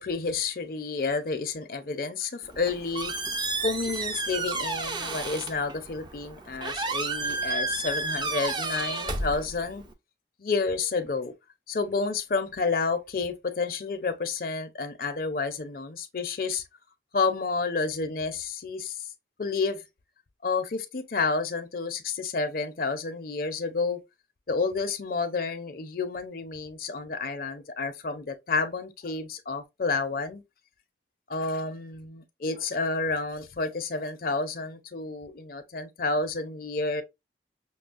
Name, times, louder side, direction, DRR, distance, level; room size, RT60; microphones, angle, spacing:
voice 1, 0.0-3.1 3.6-9.9 10.4-11.3 11.7-16.6 17.1-19.0 19.4-19.8 20.4-24.0 24.5-30.4 31.3-37.0, left 4 dB, 50° left, 0.5 m, -30 dB
Squeak, 2.4-9.9, right 3 dB, 25° right, 0.4 m, -32 dB
5.9 x 2.0 x 2.4 m
head